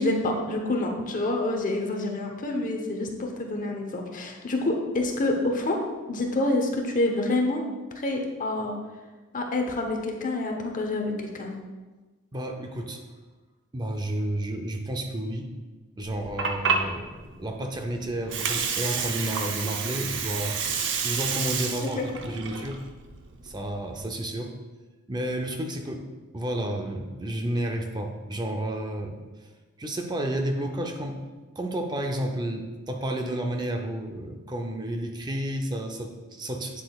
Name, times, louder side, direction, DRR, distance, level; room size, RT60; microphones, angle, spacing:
voice 1, 0.0-5.8 6.1-7.6 8.0-8.8 9.3-11.5 21.8-22.1, left 2 dB, 40° left, 2 dB, 1.0 m, -27 dB
voice 2, 12.3-13.0 13.7-15.5 16.0-22.8 23.4-24.5 25.1-26.1 26.3-29.1 29.8-31.2 31.6-36.8, right 1 dB, 20° right, 4 dB, 0.6 m, -31 dB
Water, 16.0-24.0, right 5 dB, 55° right, 0.7 m, -30 dB
8.8 x 7.7 x 2.4 m, 1.3 s
head